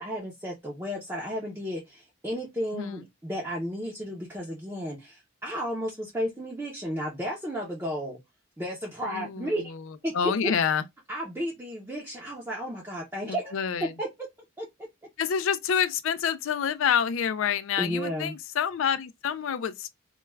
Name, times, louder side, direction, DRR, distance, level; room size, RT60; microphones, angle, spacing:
voice 1, 0.0-8.2 8.6-9.6 10.0-10.1 10.4-10.5 11.1-13.6 14.0-14.1 14.6-14.7 17.8-18.4, equal, 10° right, 0.5 m, -33 dB
voice 2, 9.1-10.8 13.3-13.9 15.2-19.9, left 7 dB, 65° left, 0.4 m, -28 dB
2.3 x 2.2 x 3.1 m
head